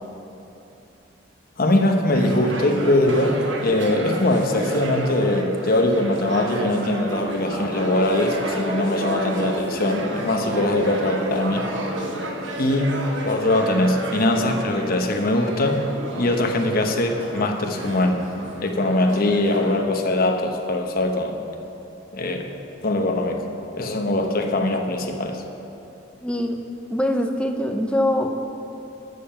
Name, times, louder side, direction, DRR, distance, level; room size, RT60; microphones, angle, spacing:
voice 1, 1.6-11.7 12.6-15.9 16.2-18.3 18.6-21.4 22.1-22.5 22.8-23.4 23.7-25.4, left 1 dB, 50° left, 4 dB, 0.9 m, -22 dB
sound 1, 2.1-19.8, right 1 dB, 70° right, 1.2 m, -31 dB
voice 2, 26.2-26.6 26.9-28.4, left 1 dB, 5° left, 4 dB, 0.7 m, -23 dB
13.0 x 6.9 x 5.6 m, 2.9 s
head